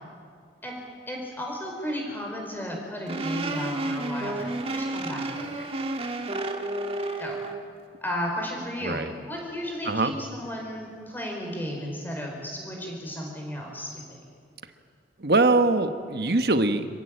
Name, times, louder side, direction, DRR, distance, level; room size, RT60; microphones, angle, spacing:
voice 1, 1.1-5.7 7.2-7.4 8.0-14.2, equal, 10° left, 0 dB, 4.9 m, -34 dB
sound 1, 3.1-7.6, right 2 dB, 30° right, 1.5 m, -31 dB
voice 2, 15.2-16.9, right 2 dB, 60° right, 9 dB, 1.2 m, -22 dB
26.0 x 15.5 x 9.0 m, 2.2 s
head